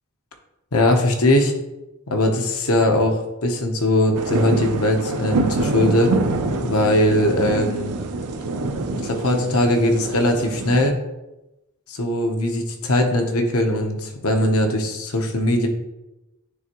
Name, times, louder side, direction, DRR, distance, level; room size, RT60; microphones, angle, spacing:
voice 1, 0.7-1.5 2.1-6.1 6.6-7.9 9.0-11.0 11.9-15.7, left 1 dB, 70° left, 3 dB, 0.9 m, -20 dB
sound 1, 4.1-10.9, right 3 dB, 90° right, 0.6 m, -26 dB
9.5 x 3.5 x 3.0 m, 0.97 s
head